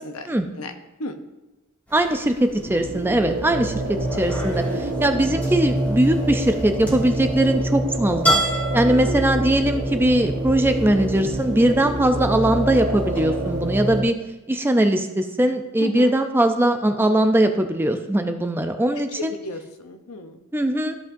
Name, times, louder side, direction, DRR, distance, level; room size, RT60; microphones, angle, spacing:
voice 1, 0.0-0.7 1.0-1.2 15.8-16.1 19.2-20.4, left 2 dB, 75° left, 7 dB, 0.8 m, -33 dB
sound 1, 1.9-14.0, right 1 dB, 10° left, 2.7 m, -33 dB
voice 2, 1.9-8.4 8.7-14.2 14.5-19.3 20.5-20.9, right 1 dB, 10° right, 6 dB, 0.4 m, -20 dB
sound 2, 2.6-14.0, right 1 dB, 75° right, 1.4 m, -26 dB
14.0 x 5.5 x 2.6 m, 1.1 s
head